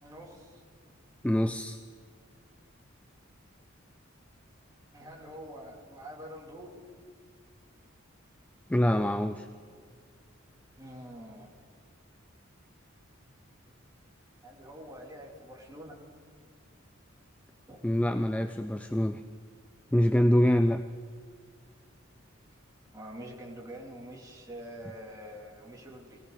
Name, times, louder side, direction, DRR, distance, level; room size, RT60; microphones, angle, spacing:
voice 1, 0.0-0.5 4.9-6.7 10.8-11.5 14.4-16.0 17.7-17.8 22.9-26.2, equal, 20° right, -3 dB, 2.7 m, -45 dB
voice 2, 1.2-1.8 8.7-9.5 17.8-19.2 19.9-20.8, equal, 5° left, 10 dB, 0.3 m, -25 dB
21.5 x 17.5 x 3.9 m, 2.1 s
head